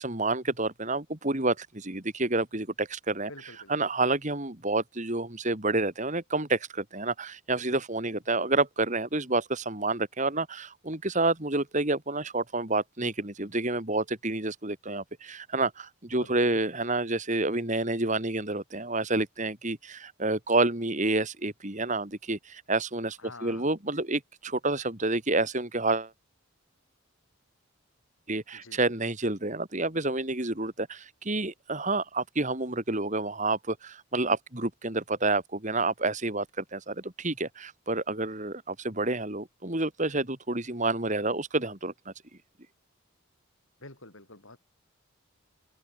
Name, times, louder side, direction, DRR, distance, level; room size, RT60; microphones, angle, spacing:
voice 1, 0.0-3.3 3.7-26.1 28.3-42.1, right 2 dB, 35° right, 2.6 m, -29 dB
voice 2, 3.3-3.7 16.1-16.6 23.2-23.7 28.5-28.9 43.8-44.6, left 2 dB, 70° left, 7.4 m, -48 dB
head